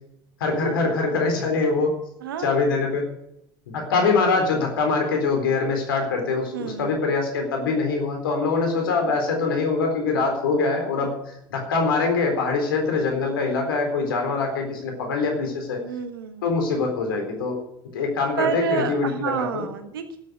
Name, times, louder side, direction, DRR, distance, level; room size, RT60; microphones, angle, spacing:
voice 1, 0.4-1.9 2.4-3.0 3.7-11.1 11.5-15.8 16.4-17.6 17.9-19.7, left 4 dB, 85° left, 3 dB, 4.0 m, -23 dB
voice 2, 2.2-2.6 6.5-7.0 15.8-16.4 18.4-20.2, right 6 dB, 90° right, 9 dB, 1.5 m, -29 dB
12.5 x 8.4 x 9.5 m, 0.78 s
hypercardioid pair, 70°, 11 cm